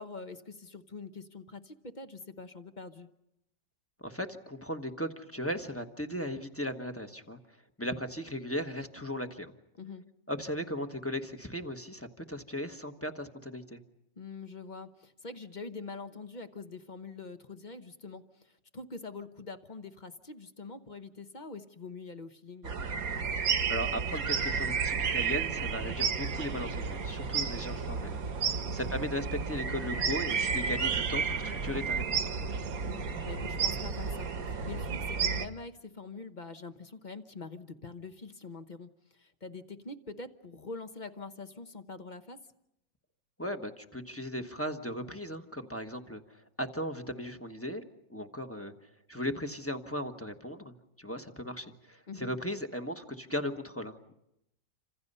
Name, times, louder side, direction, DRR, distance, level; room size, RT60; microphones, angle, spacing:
voice 1, 0.0-3.1 9.8-10.1 14.2-22.7 28.6-28.9 32.9-42.4 52.1-52.3, left 4 dB, 35° left, 9 dB, 0.8 m, -44 dB
voice 2, 4.0-7.4 7.8-9.5 10.3-13.8 23.7-32.6 43.4-47.8 48.1-48.7 49.1-54.1, equal, 10° left, 5 dB, 1.0 m, -37 dB
sound 1, 22.6-35.5, right 6 dB, 55° right, 1.6 m, -32 dB
28.5 x 26.5 x 5.5 m, 0.84 s
omnidirectional pair, 2.0 m